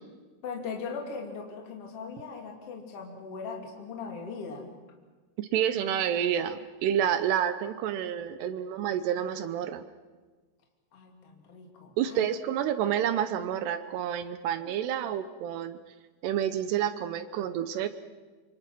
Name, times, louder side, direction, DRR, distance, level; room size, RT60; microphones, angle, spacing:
voice 1, 0.4-4.7 10.9-12.3, left 5 dB, 35° left, 1 dB, 3.3 m, -39 dB
voice 2, 5.4-9.8 12.0-15.8 16.2-17.9, right 10 dB, 75° right, 11 dB, 2.6 m, -29 dB
27.0 x 24.5 x 6.1 m, 1.3 s
omnidirectional pair, 5.4 m